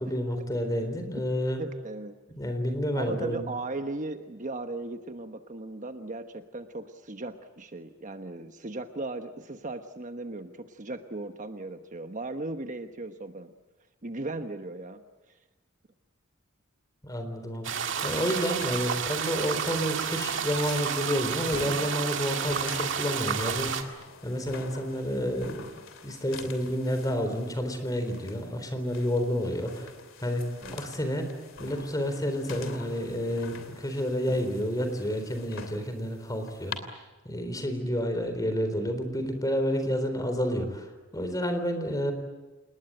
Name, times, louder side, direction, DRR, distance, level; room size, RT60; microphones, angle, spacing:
voice 1, 0.0-1.6 2.3-3.4 17.0-23.9 24.2-25.7 26.0-29.9 30.2-30.4 30.7-31.3 31.6-36.9 37.2-42.1, equal, 20° left, 7 dB, 3.9 m, -30 dB
voice 2, 1.6-2.1 2.9-13.5 14.0-15.0 30.6-30.8, right 2 dB, 40° right, 7 dB, 1.2 m, -37 dB
sound 1, 17.6-23.8, right 7 dB, 65° right, 2.1 m, -31 dB
sound 2, 18.6-36.8, left 4 dB, 70° left, 3.0 m, -46 dB
28.5 x 20.0 x 8.9 m, 1.1 s
head